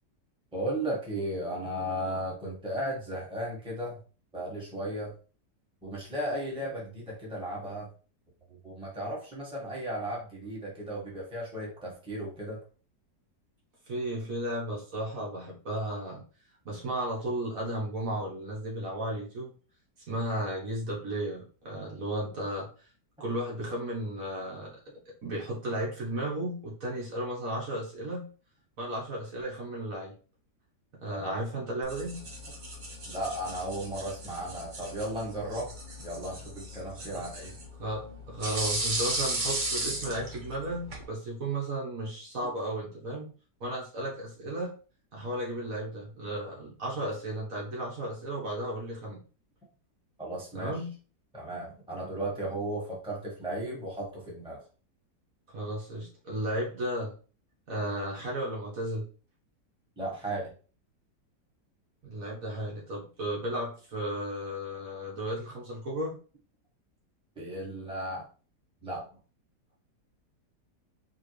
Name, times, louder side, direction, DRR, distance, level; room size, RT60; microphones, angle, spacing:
voice 1, 0.5-4.0 4.3-5.1 5.8-7.9 8.6-12.6 31.1-31.3 33.1-35.7 36.0-37.5 50.2-50.7 51.3-54.6 60.0-60.5 67.3-68.2 68.8-69.0, right 1 dB, 5° right, -4 dB, 1.2 m, -35 dB
voice 2, 13.9-16.2 16.6-19.5 20.1-22.7 23.2-24.8 25.2-28.3 28.8-30.1 31.0-32.2 37.1-37.3 37.8-43.3 43.6-44.7 45.1-49.2 50.5-50.9 55.5-57.1 57.7-59.1 62.0-66.1, right 1 dB, 55° right, -4 dB, 1.6 m, -34 dB
sound 1, 31.8-41.0, right 1 dB, 40° right, 0.7 m, -36 dB
4.7 x 2.5 x 3.2 m, 0.38 s
omnidirectional pair, 1.8 m